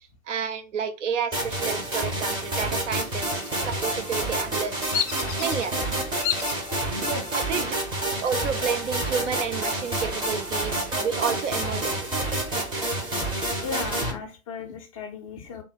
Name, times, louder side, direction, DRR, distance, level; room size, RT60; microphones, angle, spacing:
voice 1, 0.3-3.4 3.7-4.8 5.4-5.9 6.7-7.1 7.3-7.7 8.2-12.3 12.5-12.7, right 6 dB, 60° right, 8 dB, 0.7 m, -30 dB
sound 1, 1.3-14.1, right 1 dB, 10° right, 0.7 m, -28 dB
Bird vocalization bird call bird song, 4.9-5.7 6.2-6.6 7.2-7.7 8.9-9.7 10.0-10.1 10.6-12.0, left 9 dB, 60° left, 0.7 m, -31 dB
voice 2, 6.6-7.6 13.6-15.6, left 4 dB, 25° left, 2 dB, 0.4 m, -36 dB
3.5 x 2.1 x 4.0 m, 0.31 s
figure-of-eight pair, 110°, 41 cm